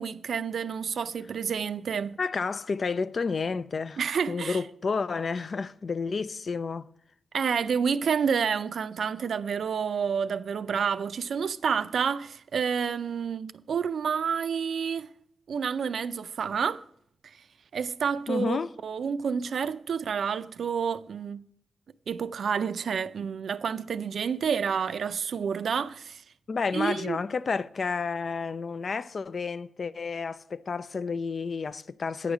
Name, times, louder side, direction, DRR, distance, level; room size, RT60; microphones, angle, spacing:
voice 1, 0.0-2.2 4.0-4.6 7.3-15.1 15.5-16.8 17.7-21.4 22.1-26.2 26.7-27.2, right 6 dB, 70° right, 0.4 m, -29 dB
voice 2, 2.2-4.0 4.3-6.9 18.3-18.7 26.5-32.3, left 4 dB, 45° left, 0.3 m, -30 dB
9.2 x 4.9 x 7.1 m
wide cardioid pair, 120°, 0 cm